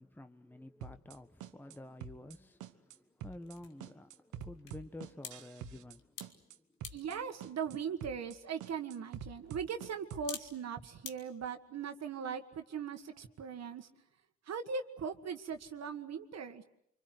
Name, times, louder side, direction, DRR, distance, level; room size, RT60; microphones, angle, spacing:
voice 1, 0.0-6.6, left 1 dB, 5° left, 0.9 m, -51 dB
sound 1, 0.8-1.2 1.4-2.4 2.6-3.0 3.2-3.6 3.8-6.0 6.2-6.6 6.8-7.2 7.4-7.8 8.0-8.4 8.6-10.3, right 7 dB, 85° right, 1.4 m, -46 dB
sound 2, 1.8-11.2, left 8 dB, 90° left, 2.2 m, -53 dB
voice 2, 6.9-13.9 14.5-16.6, right 6 dB, 60° right, 1.7 m, -40 dB
25.5 x 25.0 x 7.8 m
cardioid pair, 90°, 30 cm